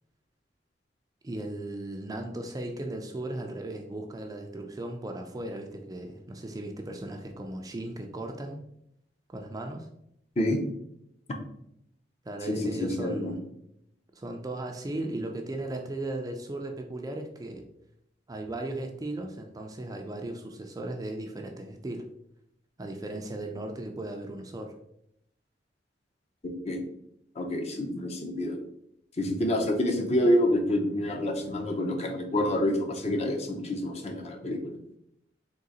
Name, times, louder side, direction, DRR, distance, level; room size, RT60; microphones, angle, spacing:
voice 1, 1.2-8.6 9.3-9.9 12.2-13.5 14.1-17.7 18.3-22.1 22.8-24.7, right 1 dB, 20° right, 3 dB, 0.4 m, -36 dB
voice 2, 12.5-13.3 26.4-26.8 27.4-28.6 29.2-34.7, left 1 dB, 35° left, 3 dB, 0.6 m, -27 dB
3.7 x 2.9 x 4.1 m, 0.76 s
head